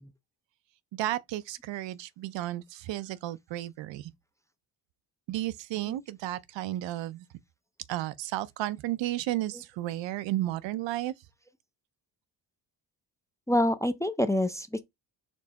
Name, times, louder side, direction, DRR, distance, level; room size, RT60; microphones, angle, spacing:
voice 1, 0.9-4.1 5.3-7.3 7.9-11.1, right 15 dB, 80° right, 0.5 m, -33 dB
voice 2, 13.5-14.8, left 1 dB, 10° left, 0.4 m, -26 dB
4.4 x 3.2 x 2.8 m
cardioid pair, 85°, 43 cm